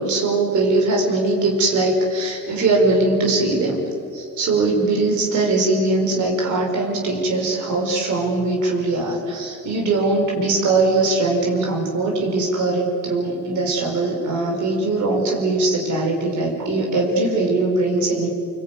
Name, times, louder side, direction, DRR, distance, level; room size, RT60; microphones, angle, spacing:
voice 1, 0.0-3.8 4.1-18.3, right 2 dB, 75° right, -1 dB, 5.1 m, -21 dB
25.5 x 21.0 x 9.3 m, 2.7 s
cardioid pair, 90°, 30 cm